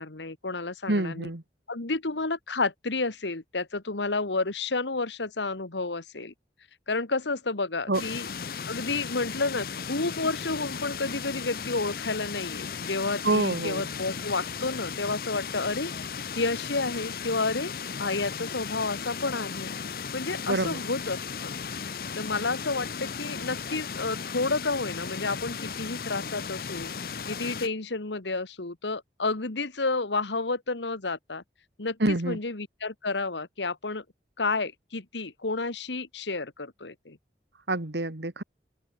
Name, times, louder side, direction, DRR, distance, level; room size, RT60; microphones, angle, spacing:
voice 1, 0.0-1.3 1.7-6.3 6.9-8.3 8.7-15.9 16.4-17.7 18.0-19.7 20.1-21.5 22.2-26.9 27.3-31.4 31.8-34.0 34.4-37.2, left 3 dB, 90° left, 1.7 m, -30 dB
voice 2, 0.9-1.4 7.9-8.0 13.2-13.9 20.5-20.8 32.0-32.4 37.7-38.4, right 2 dB, 75° right, 1.9 m, -27 dB
sound 1, 7.9-27.7, left 6 dB, 55° left, 0.7 m, -36 dB
open air
head